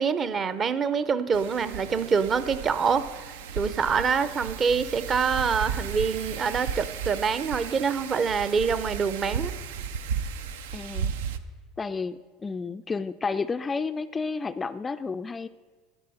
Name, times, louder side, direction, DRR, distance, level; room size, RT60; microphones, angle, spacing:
voice 1, 0.0-3.1 3.5-9.5, right 5 dB, 35° right, 13 dB, 0.7 m, -25 dB
Wind, 1.3-11.4, right 7 dB, 85° right, 0.6 m, -34 dB
voice 2, 10.7-11.1 11.8-15.5, left 4 dB, 20° left, 12 dB, 0.3 m, -31 dB
11.5 x 9.3 x 5.6 m, 1.4 s
supercardioid pair, 105°, 0 cm